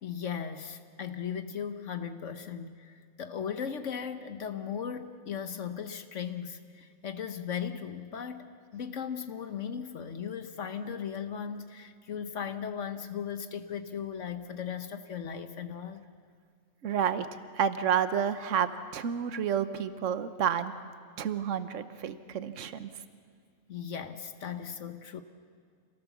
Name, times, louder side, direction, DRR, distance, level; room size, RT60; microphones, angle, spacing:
voice 1, 0.0-16.0 23.7-25.2, left 7 dB, 65° left, 9 dB, 1.2 m, -37 dB
voice 2, 16.8-17.3 17.5-20.7 21.2-22.9, right 8 dB, 70° right, 12 dB, 1.3 m, -30 dB
27.0 x 18.0 x 7.2 m, 2.2 s
omnidirectional pair, 1.4 m